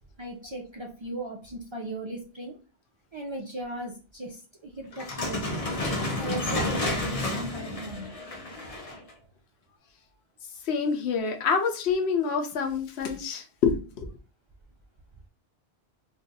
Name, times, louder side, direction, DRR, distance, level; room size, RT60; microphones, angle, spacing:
voice 1, 0.2-2.5 3.1-5.5 6.2-8.1, right 2 dB, 40° right, -1 dB, 0.4 m, -37 dB
sound 1, 4.9-9.1, left 2 dB, 40° left, 0.6 m, -30 dB
voice 2, 10.7-14.1, left 5 dB, 80° left, 5 dB, 0.9 m, -27 dB
2.5 x 2.3 x 3.9 m, 0.34 s
omnidirectional pair, 1.1 m